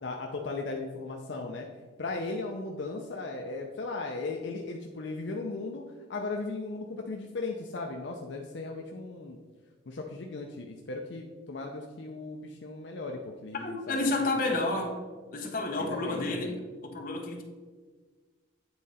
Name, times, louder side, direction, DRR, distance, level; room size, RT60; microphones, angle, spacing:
voice 1, 0.0-1.7 2.0-9.4 9.9-14.9 15.8-16.6, left 3 dB, 65° left, 1 dB, 0.6 m, -37 dB
voice 2, 13.6-15.0 15.3-16.5 16.8-17.4, left 2 dB, 45° left, 2 dB, 1.0 m, -30 dB
8.7 x 3.7 x 4.1 m, 1.5 s
head